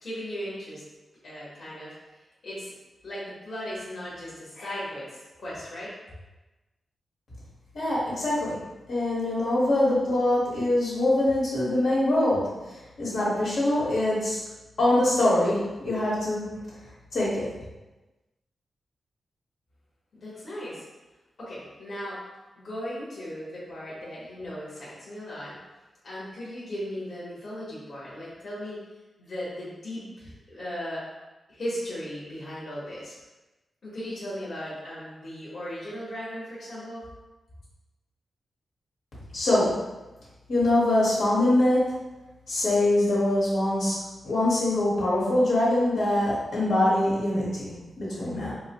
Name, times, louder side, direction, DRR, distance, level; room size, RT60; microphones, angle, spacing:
voice 1, 0.0-0.8 1.2-1.9 2.4-2.7 3.0-5.9 20.1-20.8 21.4-22.2 22.6-25.6 26.0-28.8 29.2-31.0 31.5-33.1 33.8-37.1, equal, 50° left, -8 dB, 1.1 m, -37 dB
voice 2, 7.7-8.6 8.9-12.4 13.0-14.4 14.8-16.5 17.1-17.5 39.3-39.7 40.5-41.9 42.5-44.0 44.2-48.5, left 1 dB, 75° left, -7 dB, 1.3 m, -23 dB
4.4 x 2.1 x 2.9 m, 1.1 s
wide cardioid pair, 130°, 0 cm